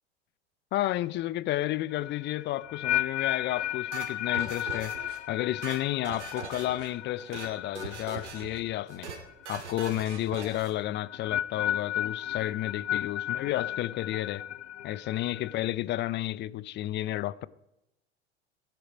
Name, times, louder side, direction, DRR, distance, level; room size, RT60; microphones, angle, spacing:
voice 1, 0.7-4.9 5.3-9.1 9.5-14.4 14.8-17.5, left 14 dB, 30° left, 0.5 m, -31 dB
sound 1, 1.9-9.0 9.3-9.7 10.9-15.5, left 12 dB, 80° left, 0.6 m, -34 dB
sound 2, 3.9-5.2 5.5-6.9 7.2-7.5 7.8-8.6 8.9-9.2 9.5-10.7, right 5 dB, 80° right, 2.5 m, -41 dB
15.5 x 10.5 x 5.1 m
hypercardioid pair, 85°, 35 cm